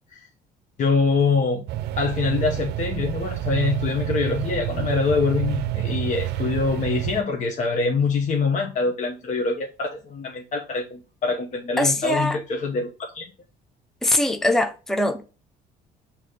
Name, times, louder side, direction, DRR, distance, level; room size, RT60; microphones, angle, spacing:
voice 1, 0.8-1.7 2.0-13.3, left 4 dB, 45° left, 0.9 m, -24 dB
sound 1, 1.7-7.2, right 14 dB, 80° right, 0.5 m, -28 dB
voice 2, 11.8-12.4 14.0-15.2, left 1 dB, ahead, 0.6 m, -22 dB
6.2 x 3.0 x 5.0 m
cardioid pair, 110°, 17 cm